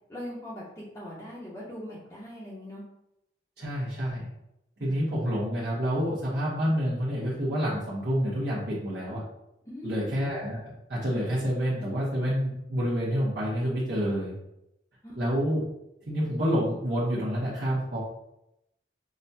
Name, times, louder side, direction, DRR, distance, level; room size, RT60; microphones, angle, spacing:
voice 1, 0.1-2.8 4.8-5.0 9.7-10.1 15.0-15.2, equal, 20° left, -9 dB, 0.9 m, -41 dB
voice 2, 3.6-4.3 4.8-9.2 9.8-14.3 15.2-15.6 16.1-18.0, equal, 65° right, -8 dB, 1.1 m, -28 dB
6.1 x 2.3 x 2.7 m, 0.84 s
head